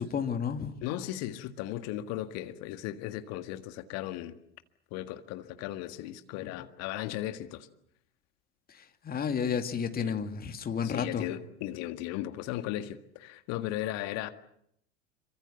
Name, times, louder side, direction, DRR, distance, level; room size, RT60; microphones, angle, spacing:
voice 1, 0.0-0.7 9.0-11.3, left 7 dB, 25° left, 2.6 m, -31 dB
voice 2, 0.8-4.4 4.9-7.7 10.0-10.1 10.8-14.3, left 14 dB, 45° left, 1.8 m, -36 dB
26.5 x 24.0 x 7.1 m
figure-of-eight pair, 75°, 35 cm